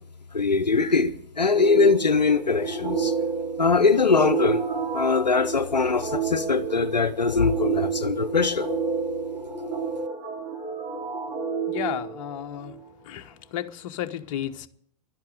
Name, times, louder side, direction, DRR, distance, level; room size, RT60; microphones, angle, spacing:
voice 1, 0.3-3.1 3.6-4.6 4.9-8.7, left 4 dB, 90° left, 0.7 m, -22 dB
sound 1, 1.5-12.8, right 5 dB, 35° right, 5.3 m, -30 dB
voice 2, 11.7-12.8 13.0-14.7, left 11 dB, 50° left, 1.0 m, -33 dB
12.0 x 10.5 x 9.2 m
figure-of-eight pair, 100°, 21 cm